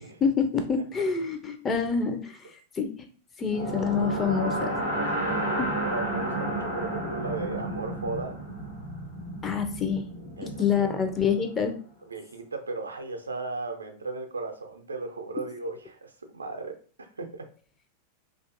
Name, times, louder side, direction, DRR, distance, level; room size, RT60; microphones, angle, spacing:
voice 1, 0.2-2.4 2.8-2.9 3.4-4.7 9.4-10.1 10.4-11.7, left 6 dB, 20° left, 6 dB, 0.4 m, -26 dB
sound 1, 3.5-11.5, right 1 dB, 85° left, 1.0 m, -32 dB
voice 2, 5.2-8.4 10.4-11.1 12.1-17.5, right 3 dB, 75° right, 5 dB, 0.4 m, -36 dB
2.5 x 2.3 x 2.5 m, 0.39 s
figure-of-eight pair, 90°, 0 cm